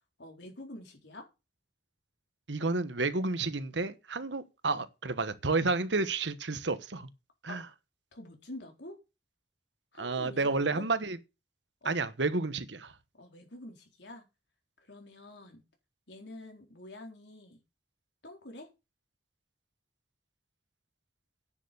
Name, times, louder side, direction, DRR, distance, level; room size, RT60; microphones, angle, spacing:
voice 1, 0.2-1.3 7.5-7.6 8.1-9.0 9.9-10.9 11.8-12.0 13.1-14.2 14.9-15.6 16.1-17.6 18.2-18.7, left 1 dB, 70° left, 4.0 m, -47 dB
voice 2, 2.5-7.1 7.4-7.6 10.0-11.2 11.8-12.9, right 3 dB, 80° right, 1.2 m, -31 dB
10.0 x 7.0 x 6.9 m
head